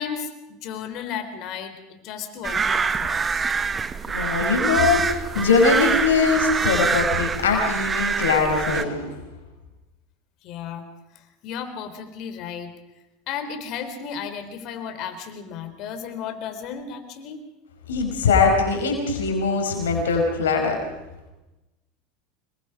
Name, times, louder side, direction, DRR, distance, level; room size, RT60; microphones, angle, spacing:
voice 1, 0.0-3.5 10.4-10.8 11.1-12.7 13.3-17.4, left 7 dB, 55° left, 8 dB, 4.1 m, -34 dB
sound 1, 2.4-8.8, right 5 dB, 25° right, 1.1 m, -25 dB
voice 2, 4.1-9.1 17.9-20.8, left 4 dB, 85° left, 2 dB, 5.1 m, -21 dB
26.0 x 22.0 x 5.1 m, 1.0 s
hypercardioid pair, 85°, 0 cm